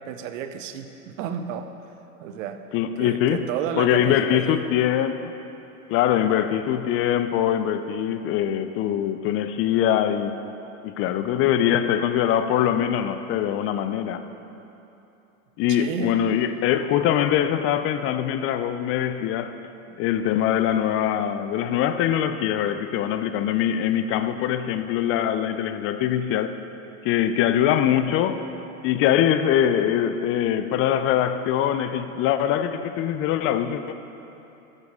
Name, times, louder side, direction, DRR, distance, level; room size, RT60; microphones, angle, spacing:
voice 1, 0.1-1.7 2.2-2.6 3.0-4.6 15.7-16.2 19.9-20.0, right 8 dB, 65° right, 8 dB, 0.8 m, -32 dB
voice 2, 2.7-3.4 3.8-5.3 5.9-10.4 10.8-14.3 15.6-19.5 20.0-26.6 27.0-28.5 28.8-33.9, left 10 dB, 35° left, 11 dB, 0.4 m, -23 dB
13.0 x 8.2 x 3.6 m, 2.9 s
hypercardioid pair, 105°, 43 cm